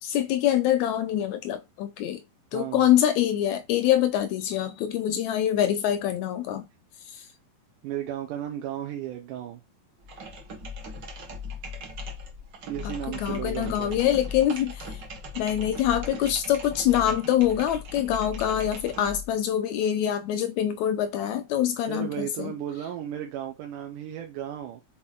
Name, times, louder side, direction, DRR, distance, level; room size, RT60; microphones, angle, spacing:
voice 1, 0.0-2.2 2.5-6.7 7.1-7.2 12.8-15.0 15.4-22.5, left 11 dB, 80° left, 1.7 m, -25 dB
voice 2, 2.5-2.9 5.1-5.2 7.1-7.3 7.8-9.6 12.7-14.0 21.9-24.8, right 11 dB, 80° right, 2.3 m, -34 dB
sound 1, 10.0-19.3, left 3 dB, 55° right, 1.3 m, -38 dB
5.9 x 4.2 x 3.8 m
omnidirectional pair, 3.7 m